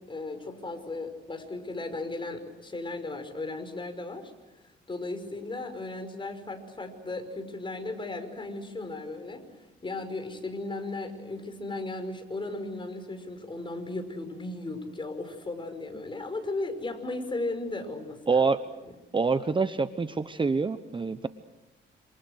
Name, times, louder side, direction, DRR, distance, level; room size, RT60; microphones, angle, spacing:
voice 1, 0.0-4.3 4.9-9.4 9.8-18.5 18.8-18.9, left 2 dB, 25° left, 7 dB, 5.4 m, -36 dB
voice 2, 18.3-18.6 19.1-21.3, right 4 dB, 25° right, 11 dB, 1.0 m, -26 dB
28.0 x 27.5 x 6.5 m, 1.0 s
cardioid pair, 90°, 20 cm